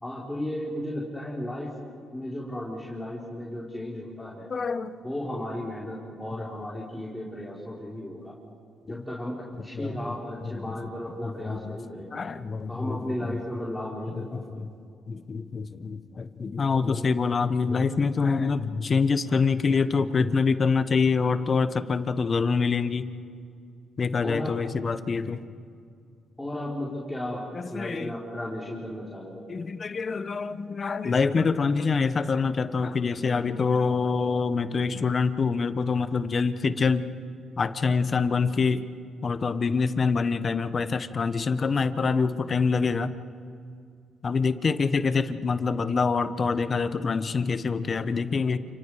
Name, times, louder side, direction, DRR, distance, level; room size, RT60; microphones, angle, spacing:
voice 1, 0.0-4.5 5.0-8.4 8.8-12.2 12.7-14.6 16.8-17.1 24.2-24.6 26.4-29.4, left 1 dB, 10° left, -6 dB, 4.5 m, -35 dB
voice 2, 4.5-5.0 8.9-9.0 9.7-10.1 10.4-10.7 11.2-11.7 12.1-13.3 14.3-14.7 15.1-23.1 24.0-25.4 27.5-28.1 29.5-37.1 37.6-38.8 39.2-43.1 44.2-48.6, left 5 dB, 40° left, 12 dB, 1.2 m, -26 dB
29.5 x 29.0 x 5.0 m, 2.3 s
cardioid pair, 90°, 0 cm